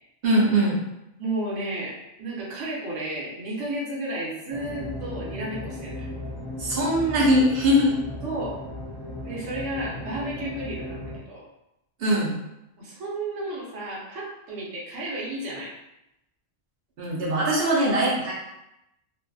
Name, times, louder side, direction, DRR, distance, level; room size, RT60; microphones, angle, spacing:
voice 1, 0.2-0.8 6.6-8.0 12.0-12.4 17.0-18.3, equal, 55° right, -5 dB, 1.0 m, -21 dB
voice 2, 1.2-6.1 8.2-8.6 9.2-11.4 12.8-15.7, right 1 dB, 80° right, -5 dB, 1.1 m, -32 dB
sound 1, 4.5-11.2, left 1 dB, 35° left, 0.3 m, -36 dB
2.6 x 2.4 x 2.3 m, 0.88 s
omnidirectional pair, 1.2 m